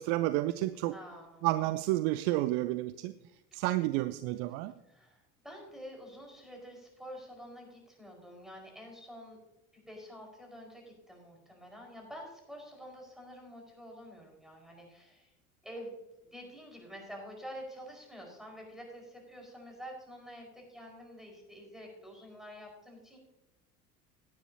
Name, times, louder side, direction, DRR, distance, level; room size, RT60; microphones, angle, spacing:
voice 1, 0.0-1.0 1.4-3.1 3.5-4.7, right 16 dB, 50° right, 15 dB, 0.5 m, -30 dB
voice 2, 0.9-1.5 4.9-9.4 9.7-15.3 15.6-15.9 16.3-23.2, equal, ahead, 0 dB, 4.9 m, -48 dB
17.5 x 9.7 x 2.8 m, 0.91 s
figure-of-eight pair, 70°, 45 cm